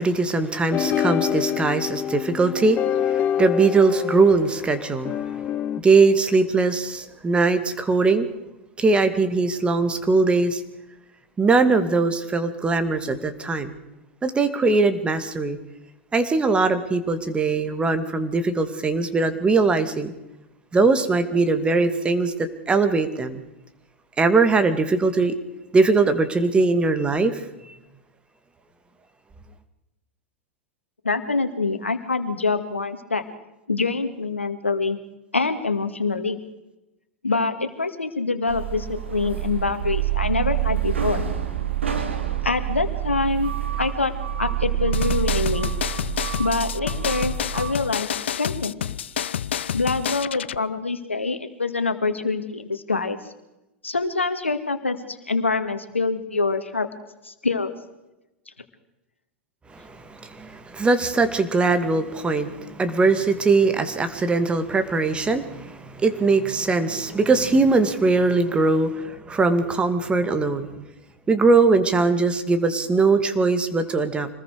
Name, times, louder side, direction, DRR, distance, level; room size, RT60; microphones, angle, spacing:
voice 1, 0.0-5.2 5.8-8.3 8.8-10.6 11.4-13.7 14.2-15.6 16.1-20.1 20.7-23.4 24.2-25.3 25.7-27.4 59.7-70.7 71.3-74.3, right 3 dB, 15° right, 10 dB, 2.3 m, -21 dB
sound 1, 0.7-5.8, left 10 dB, 30° left, 0.7 m, -26 dB
voice 2, 31.0-33.2 33.7-35.0 35.3-36.4 37.2-41.3 42.4-44.1 44.4-45.7 46.4-48.9 49.7-53.2 53.8-56.9 57.2-57.7, left 3 dB, 85° left, 9 dB, 2.1 m, -25 dB
sound 2, 38.5-47.7, right 11 dB, 80° right, 2.9 m, -27 dB
sound 3, 44.9-50.6, left 9 dB, 70° left, 0.6 m, -28 dB
26.0 x 20.5 x 4.9 m, 0.97 s
figure-of-eight pair, 95°, 6 cm